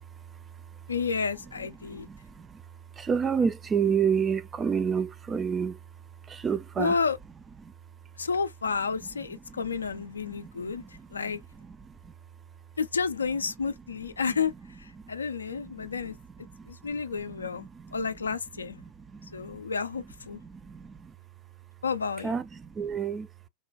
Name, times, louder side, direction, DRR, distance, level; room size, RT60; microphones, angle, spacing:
voice 1, 0.9-2.1 6.8-7.2 8.2-10.8 11.1-11.4 12.8-14.5 14.8-16.2 16.7-17.7 17.9-18.8 19.3-20.4 21.8-22.3, left 5 dB, 75° left, 0.4 m, -30 dB
voice 2, 1.6-2.6 2.9-5.8 6.3-7.0 7.6-7.7 9.0-9.1 9.5-9.7 9.9-12.1 14.9-15.0 15.6-16.2 16.4-18.0 18.6-19.6 20.3-21.2 22.2-23.3, right 6 dB, 20° right, 0.3 m, -31 dB
3.3 x 2.2 x 2.4 m
figure-of-eight pair, 90°, 0 cm